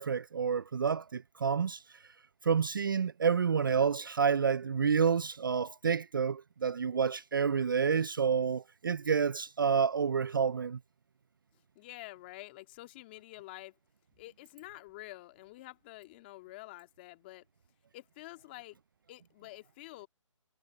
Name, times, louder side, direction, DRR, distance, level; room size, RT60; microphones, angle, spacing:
voice 1, 0.0-1.8 2.4-10.8, right 6 dB, 40° right, 0.4 m, -29 dB
voice 2, 11.8-13.8 14.2-17.4 17.9-18.8 19.1-20.1, left 19 dB, 20° left, 1.8 m, -48 dB
hypercardioid pair, 165°, 17 cm